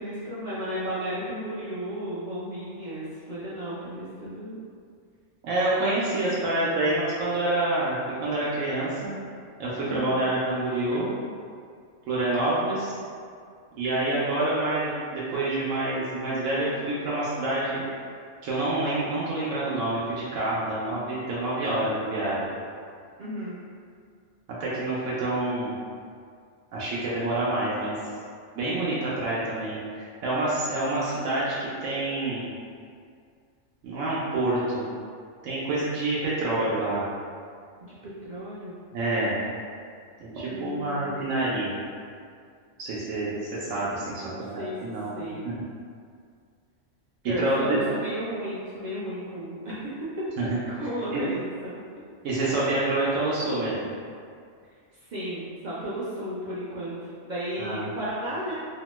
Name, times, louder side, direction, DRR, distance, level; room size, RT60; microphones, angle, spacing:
voice 1, 0.0-4.6 6.1-6.3 6.5-6.9 9.8-10.2 23.2-23.6 37.8-38.7 40.4-41.3 44.0-45.4 47.2-50.2 50.8-51.8 55.1-58.5, equal, 55° right, -10 dB, 0.5 m, -34 dB
voice 2, 5.4-9.1 9.6-11.1 12.1-13.0 13.8-17.8 18.4-22.6 24.6-25.7 26.7-27.9 28.5-32.5 33.8-34.9 35.4-37.0 38.9-39.4 40.2-41.8 42.8-45.2 45.4-45.5 47.2-47.8 50.4-50.6 51.1-51.2 52.2-53.9 57.6-58.0, right 2 dB, 85° right, -8 dB, 0.9 m, -27 dB
2.8 x 2.1 x 2.9 m, 2.2 s
omnidirectional pair, 1.3 m